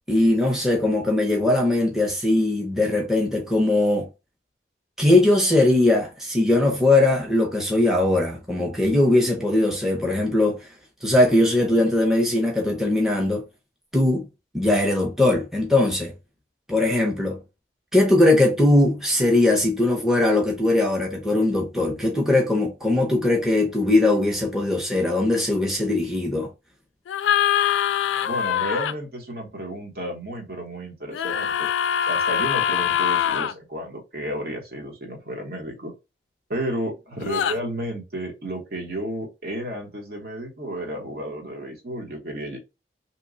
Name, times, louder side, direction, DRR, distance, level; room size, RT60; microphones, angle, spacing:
voice 1, 0.1-4.1 5.0-10.7 11.0-13.4 13.9-14.2 14.5-16.1 16.7-17.4 17.9-26.5, left 2 dB, ahead, 0.6 m, -20 dB
sound 1, 27.1-28.9 31.1-33.5 37.2-37.6, left 9 dB, 90° left, 0.3 m, -23 dB
voice 2, 28.2-31.7 32.1-35.9 36.5-42.6, right 1 dB, 55° right, 1.0 m, -32 dB
2.9 x 2.1 x 3.7 m
head